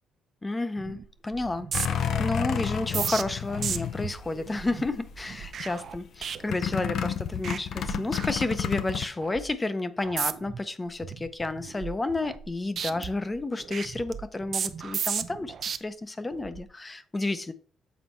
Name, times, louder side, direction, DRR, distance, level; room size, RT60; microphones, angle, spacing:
voice 1, 0.4-17.5, left 2 dB, 20° left, 0.6 m, -31 dB
sound 1, 0.8-1.0 1.3-7.0 7.3-7.6 7.9-8.8 9.2-9.5 10.0-10.6 11.0-12.5 12.8-15.8 16.3-16.6, right 7 dB, 55° right, 0.5 m, -35 dB
sound 2, 1.7-4.7 5.1-5.6 6.5-9.1, left 8 dB, 65° left, 0.6 m, -30 dB
7.2 x 4.1 x 4.4 m
cardioid pair, 105°, 0 cm